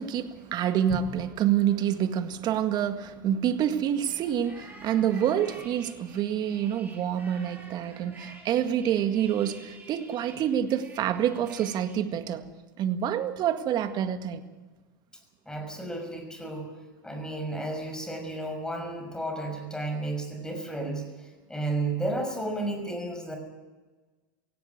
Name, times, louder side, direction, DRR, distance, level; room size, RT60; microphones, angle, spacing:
voice 1, 0.0-12.5 12.8-14.4, right 10 dB, 40° right, 9 dB, 1.9 m, -27 dB
sound 1, 4.0-12.0, right 2 dB, 15° right, 7.1 m, -50 dB
voice 2, 15.5-16.7 17.0-23.4, right 2 dB, 5° left, 5 dB, 5.9 m, -33 dB
17.5 x 17.0 x 9.5 m, 1.3 s
hypercardioid pair, 105°, 11 cm